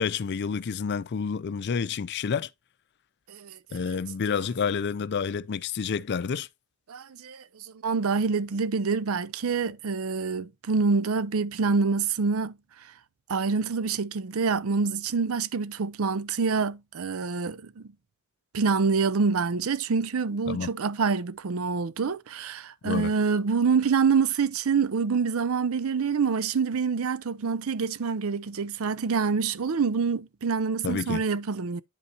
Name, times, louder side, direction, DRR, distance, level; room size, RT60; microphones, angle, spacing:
voice 1, 0.0-2.5 3.7-6.5 20.5-20.7 22.8-23.1 30.8-31.2, left 6 dB, 50° left, 0.4 m, -29 dB
voice 2, 3.3-3.8 6.9-12.6 13.3-17.8 18.5-31.8, right 5 dB, 65° right, 0.5 m, -26 dB
9.5 x 5.3 x 2.8 m
head